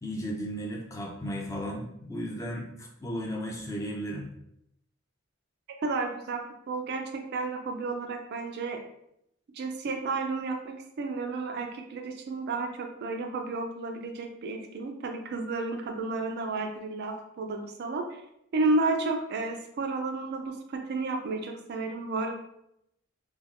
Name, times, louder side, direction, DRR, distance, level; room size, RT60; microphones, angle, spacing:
voice 1, 0.0-4.3, equal, 15° left, -1 dB, 0.5 m, -35 dB
voice 2, 5.8-8.8 9.5-18.2 18.5-22.3, right 3 dB, 55° right, 4 dB, 0.4 m, -32 dB
3.3 x 2.2 x 2.4 m, 0.78 s
head